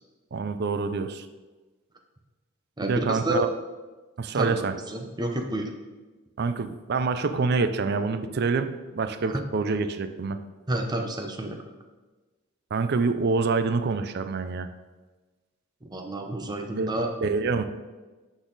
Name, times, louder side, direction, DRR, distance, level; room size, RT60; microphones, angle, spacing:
voice 1, 0.3-1.3 2.8-3.5 4.2-4.7 6.4-10.4 12.7-14.7 16.8-16.9 17.2-17.6, right 4 dB, 50° right, 10 dB, 0.4 m, -26 dB
voice 2, 2.8-3.5 4.3-4.6 4.9-5.7 9.3-9.4 10.7-11.6 15.8-17.1, right 1 dB, 20° right, 4 dB, 0.7 m, -29 dB
12.0 x 4.0 x 3.9 m, 1.2 s
head